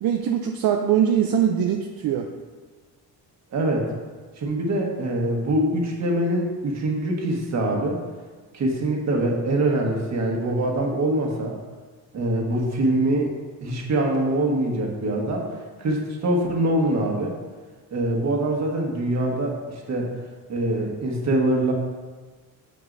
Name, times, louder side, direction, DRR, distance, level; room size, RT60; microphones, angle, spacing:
voice 1, 0.0-2.3, right 9 dB, 70° right, 3 dB, 0.6 m, -22 dB
voice 2, 3.5-3.9 4.4-8.0 8.5-11.6 12.1-13.3 13.6-15.5 15.8-17.3 17.9-20.1 20.5-21.7, right 1 dB, 45° right, -1 dB, 1.5 m, -24 dB
9.1 x 7.6 x 2.6 m, 1.4 s
cardioid pair, 180°, 37 cm